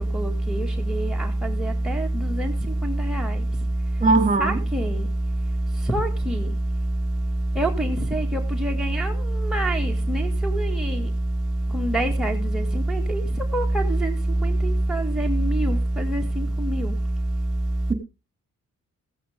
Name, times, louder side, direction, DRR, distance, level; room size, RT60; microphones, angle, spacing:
voice 1, 0.1-2.1 2.4-2.5 2.8-3.3 4.4-5.0 5.9-6.4 7.6-9.1 9.5-11.0 11.7-13.2 13.5-14.1 14.4-14.5 14.9-16.9, right 1 dB, ahead, 1 dB, 2.0 m, -24 dB
voice 2, 4.0-4.6, right 3 dB, 25° right, 10 dB, 2.6 m, -19 dB
15.5 x 8.4 x 3.6 m, 0.27 s
cardioid pair, 65°, 33 cm